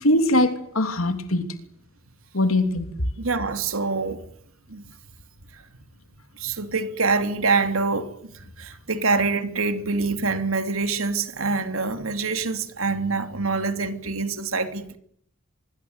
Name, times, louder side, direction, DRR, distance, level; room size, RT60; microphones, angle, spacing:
voice 1, 0.0-1.5 2.3-2.9, left 1 dB, 80° left, 3.0 m, -21 dB
voice 2, 3.2-4.2 4.7-4.8 6.4-8.1 8.6-15.0, right 4 dB, 85° right, 2.8 m, -25 dB
25.0 x 22.5 x 8.1 m
head